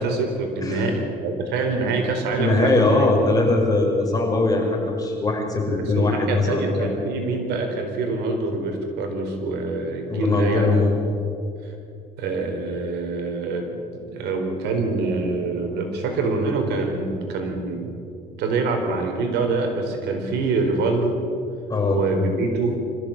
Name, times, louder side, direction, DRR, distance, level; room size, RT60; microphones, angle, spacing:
voice 1, 0.0-3.1 5.8-10.8 11.6-11.7 12.2-17.9 18.4-21.2 21.9-22.8, right 3 dB, 85° right, 4 dB, 4.3 m, -25 dB
voice 2, 2.4-6.9 10.1-10.9 21.7-22.0, left 3 dB, 20° left, 0 dB, 6.1 m, -21 dB
25.0 x 15.0 x 8.8 m, 2.6 s
cardioid pair, 110°, 17 cm